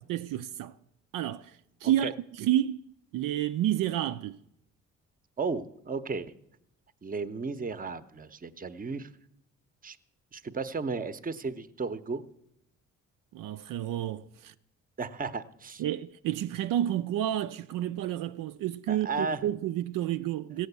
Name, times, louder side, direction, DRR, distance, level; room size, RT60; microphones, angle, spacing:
voice 1, 0.1-0.7 1.1-1.5 1.8-2.8 3.1-4.4 13.3-14.5 15.8-20.7, right 12 dB, 80° right, 0.5 m, -30 dB
voice 2, 5.4-6.3 7.0-9.1 9.8-10.0 10.3-12.2 15.0-15.8 18.9-19.4, right 4 dB, 25° right, 0.7 m, -34 dB
15.5 x 6.3 x 8.1 m
cardioid pair, 70°, 32 cm